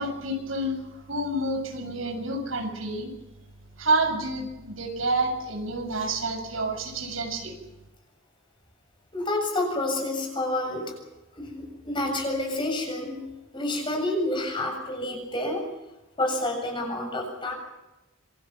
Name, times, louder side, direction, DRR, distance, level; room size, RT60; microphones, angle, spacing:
voice 1, 0.0-3.1 3.8-7.6, right 2 dB, 75° right, 4 dB, 7.1 m, -29 dB
voice 2, 9.1-10.9 11.3-15.7 16.2-17.5, left 1 dB, 25° left, 2 dB, 7.2 m, -29 dB
27.0 x 24.5 x 6.1 m, 0.98 s
head